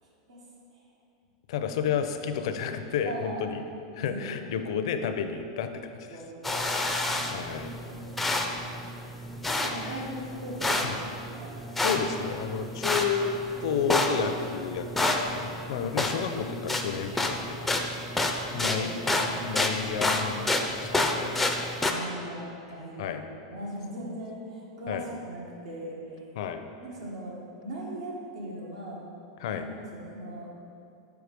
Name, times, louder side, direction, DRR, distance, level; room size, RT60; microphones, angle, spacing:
voice 1, 1.5-3.6 3.9-5.7 6.0-6.2 7.3-7.8 9.8-10.0 10.8-11.0 11.8-17.8 18.1-21.4 23.0-23.2 24.9-25.1 26.4-26.6 29.4-29.7, left 7 dB, 65° left, 8 dB, 0.5 m, -31 dB
voice 2, 3.0-3.6 4.0-4.4 6.1-7.5 7.9-8.7 9.5-11.6 18.3-19.3 21.9-23.2 23.5-26.3 26.8-29.0 29.5-30.5, right 1 dB, 85° right, -3 dB, 1.5 m, -40 dB
sound 1, 6.4-21.9, left 2 dB, 5° left, 0.4 m, -30 dB
4.7 x 4.7 x 5.2 m, 2.6 s
supercardioid pair, 150°, 3 cm